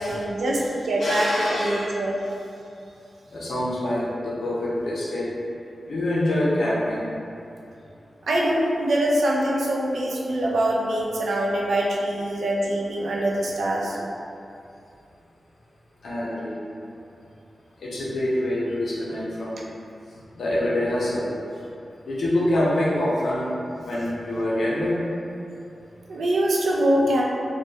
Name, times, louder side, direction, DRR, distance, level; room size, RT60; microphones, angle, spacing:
voice 1, 0.0-2.2 8.2-14.0 26.1-27.2, right 1 dB, 90° right, -3 dB, 0.3 m, -23 dB
voice 2, 1.0-1.9 3.3-5.3 5.9-7.1 16.0-16.5 17.8-19.7 20.4-21.3 22.1-23.5 23.8-25.0, left 1 dB, 85° left, -6 dB, 0.5 m, -25 dB
2.7 x 2.2 x 2.2 m, 2.6 s
wide cardioid pair, 150°, 0 cm